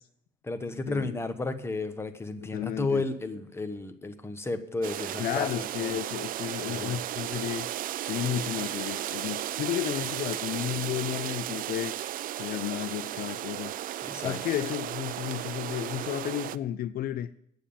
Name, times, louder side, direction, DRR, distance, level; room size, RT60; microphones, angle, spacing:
voice 1, 0.4-6.0 6.6-7.0 14.0-14.4, left 3 dB, 15° left, 1.2 m, -33 dB
voice 2, 2.4-3.1 5.2-7.7 8.1-12.1 12.4-13.7 14.2-17.3, left 12 dB, 60° left, 0.5 m, -32 dB
sound 1, 4.8-16.6, right 13 dB, 55° right, 0.4 m, -35 dB
9.2 x 7.2 x 8.6 m
cardioid pair, 110°, 17 cm